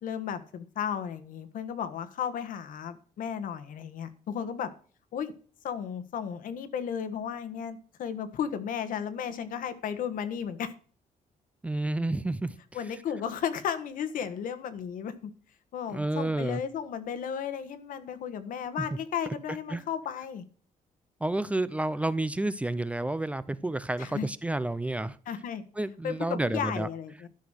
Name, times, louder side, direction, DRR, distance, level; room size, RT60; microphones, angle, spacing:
voice 1, 0.0-4.7 5.1-5.3 5.6-10.7 12.7-15.3 15.7-20.4 24.0-24.3 25.3-25.6 26.0-27.3, left 8 dB, 75° left, 1.5 m, -34 dB
voice 2, 11.6-12.5 15.9-16.6 18.8-18.9 19.7-19.8 21.2-25.2 25.8-26.9, right 2 dB, 10° right, 0.5 m, -30 dB
12.5 x 6.1 x 6.4 m
cardioid pair, 155°, 14 cm